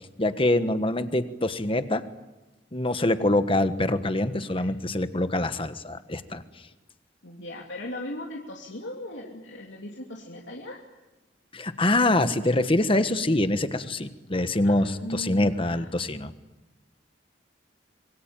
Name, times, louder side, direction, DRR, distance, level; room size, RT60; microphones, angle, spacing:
voice 1, 0.2-2.0 2.7-6.4 11.5-16.3, left 1 dB, 30° left, 10 dB, 1.4 m, -25 dB
voice 2, 7.2-10.8 14.6-15.8, left 1 dB, 90° left, -1 dB, 3.0 m, -38 dB
26.5 x 22.5 x 9.0 m, 1.1 s
head